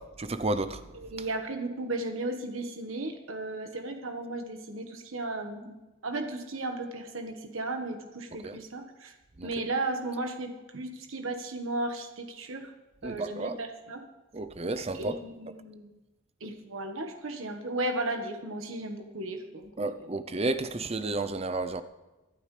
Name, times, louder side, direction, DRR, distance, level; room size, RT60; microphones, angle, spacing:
voice 1, 0.2-0.8 8.4-8.5 9.4-9.5 13.0-13.6 14.3-15.2 19.8-21.8, right 2 dB, 30° right, 0.6 m, -31 dB
voice 2, 0.9-5.7 6.0-9.1 9.4-12.7 13.0-14.0 14.9-16.0 16.4-20.2, right 2 dB, 75° right, 1.5 m, -35 dB
24.0 x 8.7 x 3.3 m
head